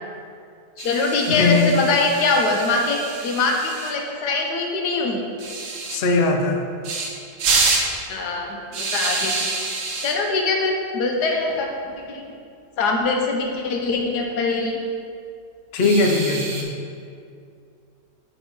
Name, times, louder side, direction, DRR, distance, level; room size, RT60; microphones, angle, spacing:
voice 1, 0.8-5.2 8.1-9.3 10.0-11.7 12.1-12.2 12.8-14.8, left 3 dB, 85° left, 1 dB, 1.4 m, -23 dB
sound 1, 0.8-3.9 5.4-6.0 6.8-7.1 7.4-7.9 8.7-10.1 11.4-11.6 11.9-12.0 12.3-12.4 13.7-14.2 15.8-16.6, right 3 dB, 85° right, 1.4 m, -27 dB
voice 2, 1.3-1.8 5.9-6.6 15.7-16.7, left 3 dB, 60° left, 3 dB, 0.7 m, -20 dB
6.2 x 4.2 x 5.3 m, 2.3 s
omnidirectional pair, 1.7 m